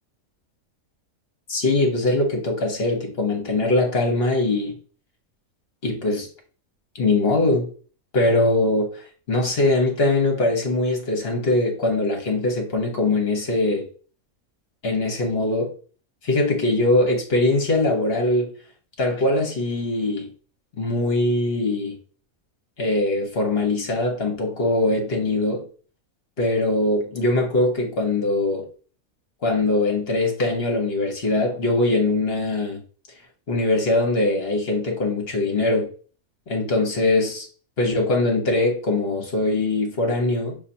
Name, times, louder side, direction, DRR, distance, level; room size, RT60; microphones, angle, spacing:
voice 1, 1.5-4.7 5.8-6.3 7.0-7.7 8.1-8.9 9.3-13.9 14.8-15.7 16.2-18.5 19.0-20.3 20.8-22.0 22.8-25.6 26.4-28.7 29.4-32.8 33.5-35.9 36.5-37.5 37.8-40.6, left 2 dB, 45° left, 1.3 m, -22 dB
6.5 x 2.7 x 2.7 m
omnidirectional pair, 1.5 m